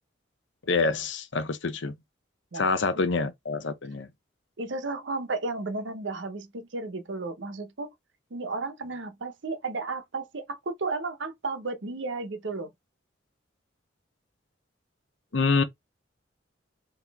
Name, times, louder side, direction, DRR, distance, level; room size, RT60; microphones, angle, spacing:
voice 1, 0.7-2.0 2.5-4.1 15.3-15.6, left 4 dB, 70° left, 0.7 m, -26 dB
voice 2, 4.6-7.9 8.3-12.7, right 3 dB, 75° right, 0.8 m, -33 dB
4.0 x 2.9 x 3.4 m
head